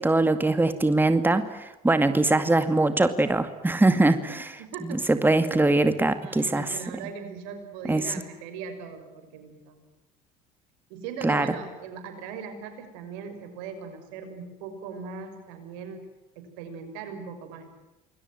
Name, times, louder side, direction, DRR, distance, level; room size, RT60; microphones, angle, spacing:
voice 1, 0.0-4.5 4.9-6.7 7.9-8.1 11.2-11.5, right 2 dB, 10° right, 10 dB, 2.2 m, -22 dB
voice 2, 4.3-5.0 6.2-9.9 10.9-16.1 16.4-17.7, right 6 dB, 80° right, 7 dB, 6.0 m, -39 dB
27.5 x 21.5 x 9.3 m, 1.0 s
supercardioid pair, 75°, 18 cm